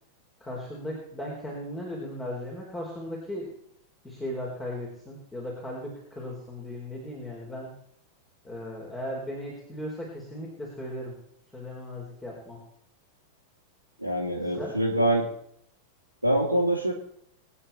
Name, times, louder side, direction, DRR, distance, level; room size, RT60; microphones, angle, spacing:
voice 1, 0.4-3.5 4.0-7.7 8.4-11.2 11.5-12.6 14.5-14.7, left 1 dB, 15° left, -2 dB, 4.4 m, -37 dB
voice 2, 14.0-15.3 16.2-16.9, right 1 dB, 90° right, -3 dB, 2.7 m, -24 dB
24.0 x 9.8 x 4.4 m, 0.70 s
figure-of-eight pair, 90°, 0 cm